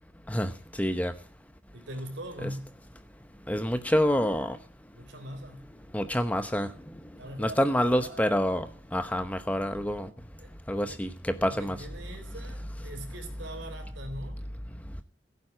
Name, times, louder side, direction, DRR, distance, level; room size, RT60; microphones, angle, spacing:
voice 1, 0.3-1.1 2.4-2.5 3.5-4.6 5.9-6.7 7.4-10.1 10.7-11.8, equal, 5° left, 0.8 m, -27 dB
voice 2, 1.7-2.7 4.9-5.7 7.2-8.4 10.4-11.0 11.4-14.4, right 1 dB, 65° right, 4.0 m, -42 dB
16.0 x 9.3 x 7.3 m
head